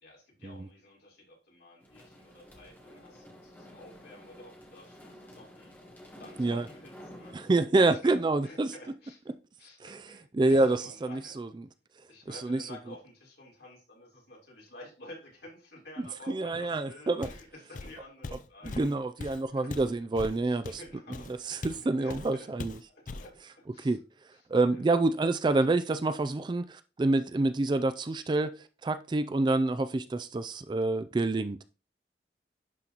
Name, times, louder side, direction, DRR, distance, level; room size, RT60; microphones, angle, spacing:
voice 1, 0.0-5.7 6.2-7.3 7.8-8.2 8.4-9.3 9.6-11.4 12.1-19.7 20.4-21.4 22.0-22.5 22.9-23.3 23.6-24.0 24.3-24.4 24.7-24.8, left 1 dB, 75° left, 3.8 m, -51 dB
sound 1, 1.8-7.7, equal, 10° left, 1.5 m, -51 dB
voice 2, 7.3-8.7 9.8-11.7 12.3-12.7 16.0-17.3 18.6-20.8 21.5-22.8 23.8-24.0 24.5-28.5 28.8-31.6, right 2 dB, 25° right, 0.3 m, -27 dB
Walk footsteps, 17.2-17.5 17.7-21.8 22.1-22.3 22.6-23.3, left 3 dB, 45° left, 0.4 m, -40 dB
11.0 x 3.9 x 2.9 m
head